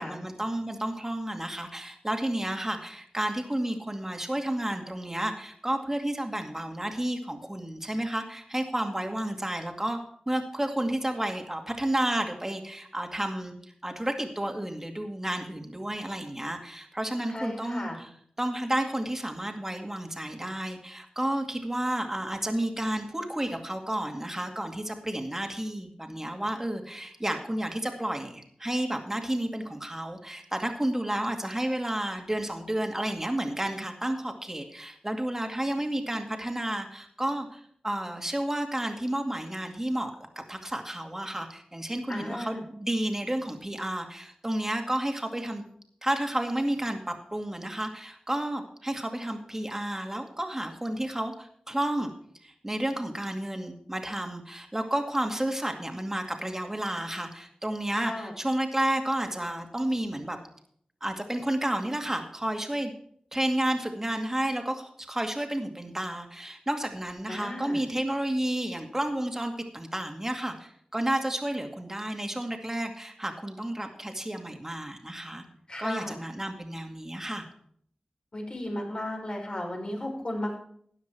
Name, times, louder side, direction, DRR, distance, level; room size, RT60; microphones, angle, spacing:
voice 1, 0.0-10.0 10.3-13.5 13.8-18.1 18.4-40.1 40.5-45.6 46.0-52.1 52.4-60.4 61.0-62.9 63.3-75.4 75.8-77.5, right 1 dB, 15° right, 4 dB, 2.2 m, -31 dB
voice 2, 17.3-18.0 42.1-42.7 57.9-58.3 67.3-67.8 75.7-76.2 78.3-80.6, left 1 dB, 40° left, 0 dB, 5.2 m, -35 dB
13.0 x 10.0 x 4.6 m, 0.63 s
wide cardioid pair, 65°, 2 cm